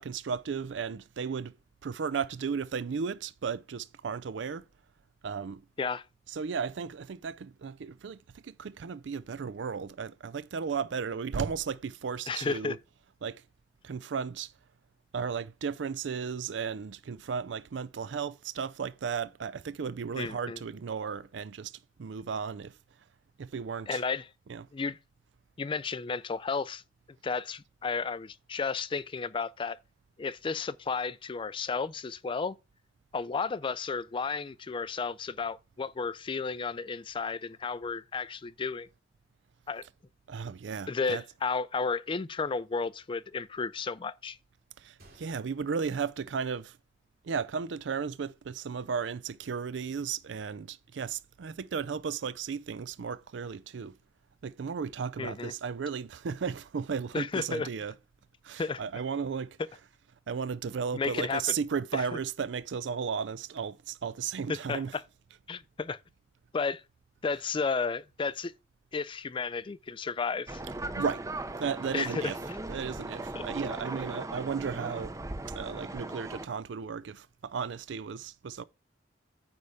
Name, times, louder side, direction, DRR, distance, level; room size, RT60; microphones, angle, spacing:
voice 1, 0.0-1.5 1.8-4.6 5.2-5.6 6.3-8.2 8.4-12.8 13.2-13.4 13.8-14.5 15.1-21.7 22.0-22.7 23.4-24.0 24.5-24.7 40.3-41.2 44.8-46.7 47.2-53.9 54.4-58.0 58.4-59.6 60.3-65.0 67.3-67.4 71.0-71.2 71.6-72.4 72.7-75.1 75.5-78.6, right 6 dB, 75° right, 0.4 m, -35 dB
voice 2, 12.3-12.8 20.2-20.6 23.9-24.3 24.7-25.0 25.6-26.8 27.2-29.8 30.2-32.6 33.1-38.9 39.7-39.8 40.9-44.4 55.2-55.5 57.1-57.7 58.6-58.8 60.9-61.5 61.9-62.1 64.5-65.0 65.5-66.0 66.5-66.8 67.2-68.5 68.9-70.6 71.9-72.3 73.3-73.4, left 4 dB, 30° left, 0.4 m, -33 dB
Gunshot gunfire, 45.0-47.0 47.3-47.4 48.1-48.3, right 1 dB, 55° right, 2.7 m, -61 dB
sound 1, 70.5-76.5, right 2 dB, 15° right, 0.6 m, -38 dB
9.6 x 3.5 x 6.5 m
head